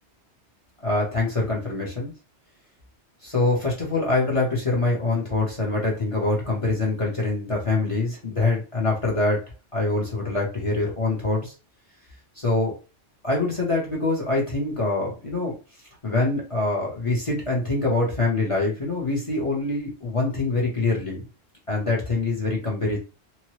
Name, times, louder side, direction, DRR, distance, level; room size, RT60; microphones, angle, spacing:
voice 1, 0.8-2.1 3.2-9.4 9.7-11.5 12.4-12.7 13.2-15.5 16.0-21.2 21.7-23.0, left 2 dB, 30° left, -3 dB, 0.9 m, -24 dB
2.9 x 2.2 x 3.0 m, 0.32 s
omnidirectional pair, 1.2 m